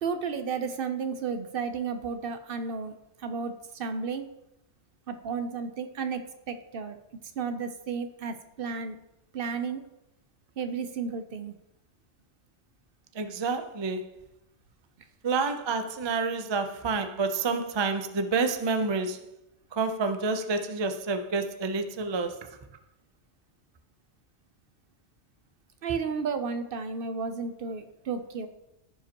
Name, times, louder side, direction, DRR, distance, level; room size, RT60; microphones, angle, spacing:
voice 1, 0.0-2.9 3.2-4.3 5.1-7.0 7.4-9.0 9.3-9.8 10.6-11.5 25.8-28.5, right 5 dB, 60° right, 0.7 m, -33 dB
voice 2, 13.1-14.1 15.2-19.2 19.7-22.4, right 4 dB, 40° right, 0.4 m, -28 dB
15.0 x 5.0 x 2.9 m
omnidirectional pair, 1.2 m